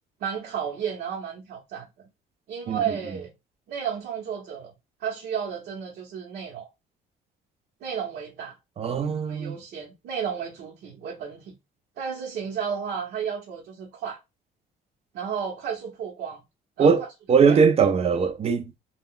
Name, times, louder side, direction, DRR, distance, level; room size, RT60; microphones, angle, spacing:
voice 1, 0.2-1.9 2.5-3.3 3.7-4.7 5.0-6.7 7.8-8.5 9.3-11.5 12.0-14.2 15.1-16.4 16.8-16.9 17.4-17.6, right 7 dB, 70° right, 0.8 m, -32 dB
voice 2, 8.8-9.6 16.8-17.0 17.3-18.7, right 6 dB, 35° right, 0.5 m, -20 dB
2.4 x 2.2 x 3.6 m
cardioid pair, 110°, 17 cm